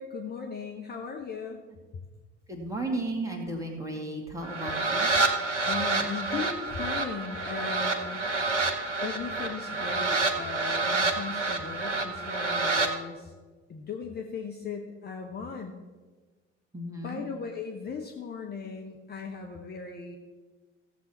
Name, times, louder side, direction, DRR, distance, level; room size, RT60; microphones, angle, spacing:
voice 1, 0.0-1.6 5.7-8.2 9.0-13.3 13.7-15.7 17.0-20.2, left 5 dB, 25° left, 3 dB, 1.0 m, -37 dB
voice 2, 2.5-5.1 16.7-17.2, right 2 dB, 10° right, 1 dB, 2.3 m, -34 dB
sound 1, 4.4-12.9, right 3 dB, 85° right, 1.0 m, -28 dB
15.5 x 7.4 x 4.3 m, 1.3 s
figure-of-eight pair, 65°, 35 cm